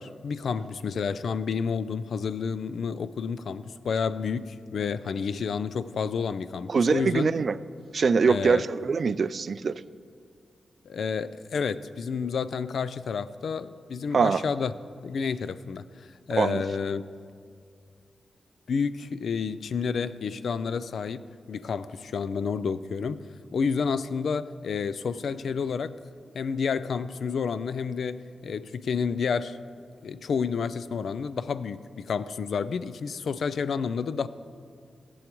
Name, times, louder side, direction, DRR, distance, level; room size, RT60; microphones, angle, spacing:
voice 1, 0.0-7.3 8.3-8.6 10.9-14.7 15.0-17.0 18.7-21.2 21.5-23.3 23.5-25.9 26.3-29.6 30.0-34.3, left 6 dB, 80° left, 14 dB, 0.4 m, -30 dB
voice 2, 6.7-7.6 7.9-9.8 14.1-14.4 16.4-16.6, right 5 dB, 60° right, 15 dB, 0.3 m, -23 dB
18.5 x 7.8 x 3.0 m, 2.2 s
cardioid pair, 85°, 0 cm